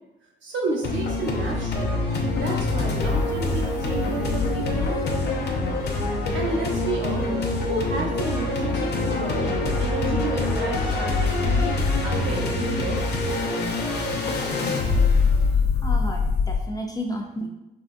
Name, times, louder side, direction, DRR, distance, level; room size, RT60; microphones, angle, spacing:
voice 1, 0.4-2.0 2.3-4.9 6.3-11.8 12.0-13.0, right 2 dB, 70° right, -2 dB, 0.9 m, -31 dB
sound 1, 0.8-16.6, left 3 dB, 55° left, 0.7 m, -24 dB
voice 2, 15.2-17.5, equal, 20° left, 1 dB, 0.4 m, -33 dB
3.5 x 2.3 x 2.6 m, 0.90 s
cardioid pair, 90°, 20 cm